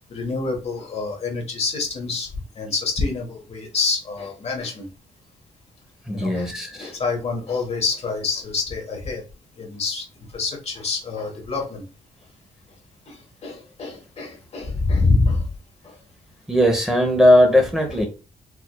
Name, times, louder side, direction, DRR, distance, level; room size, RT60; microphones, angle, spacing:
voice 1, 0.1-2.3 2.6-4.9 6.1-6.5 6.8-9.2 9.6-10.0 10.3-11.8 13.1-15.4, left 3 dB, 45° left, 2 dB, 1.2 m, -26 dB
voice 2, 6.1-6.9 16.5-18.1, left 1 dB, 5° right, 1 dB, 0.8 m, -18 dB
4.6 x 2.6 x 2.2 m, 0.33 s
cardioid pair, 95°, 14 cm